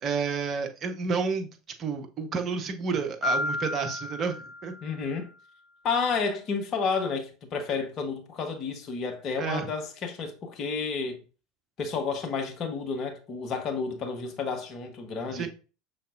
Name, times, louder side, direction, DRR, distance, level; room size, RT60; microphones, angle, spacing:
voice 1, 0.0-1.5 1.8-4.3 4.6-4.7 9.4-9.7 15.3-15.5, right 5 dB, 35° right, 0.8 m, -30 dB
Piano, 3.2-5.1, left 2 dB, ahead, 2.7 m, -32 dB
voice 2, 4.8-5.3 5.8-11.2 11.8-15.5, left 5 dB, 45° left, 1.0 m, -31 dB
5.6 x 3.7 x 2.5 m
figure-of-eight pair, 75°, 0 cm